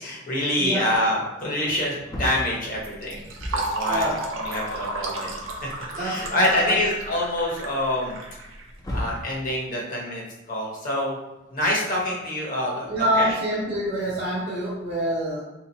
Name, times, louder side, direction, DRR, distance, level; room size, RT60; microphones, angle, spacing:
voice 1, 0.0-5.3 5.6-8.2 8.9-10.2 10.5-11.1 11.5-13.3, left 1 dB, 40° left, -3 dB, 0.9 m, -26 dB
voice 2, 0.6-0.9 3.8-4.2 5.9-6.8 12.5-15.4, right 1 dB, 35° right, -9 dB, 0.6 m, -26 dB
Wood, 1.7-3.9 5.0-5.1 5.4-6.6 7.1-7.2 8.4-9.3 11.4-12.3, left 1 dB, 20° left, 0.4 m, -36 dB
Fill (with liquid), 2.8-9.2, right 2 dB, 85° right, 0.6 m, -32 dB
3.6 x 2.8 x 2.7 m, 1.0 s
head